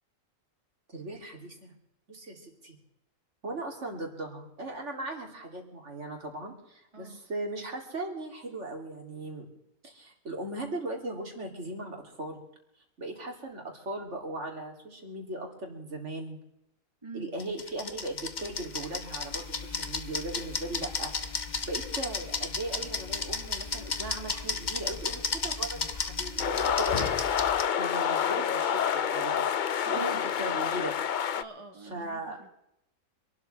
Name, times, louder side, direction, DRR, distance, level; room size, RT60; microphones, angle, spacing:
voice 1, 0.9-1.7 2.1-2.8 3.4-9.5 9.8-12.4 13.0-16.4 17.1-21.1 21.6-27.2 27.7-29.4 29.9-30.9 31.9-32.4, right 2 dB, 50° right, 2 dB, 3.2 m, -38 dB
sound 1, 17.4-27.6, left 4 dB, 35° left, 1.0 m, -34 dB
sound 2, 26.4-31.4, left 8 dB, 85° left, 0.4 m, -28 dB
voice 2, 31.3-32.5, right 3 dB, 20° right, 4 dB, 1.2 m, -46 dB
26.5 x 12.5 x 3.3 m, 0.81 s
omnidirectional pair, 1.6 m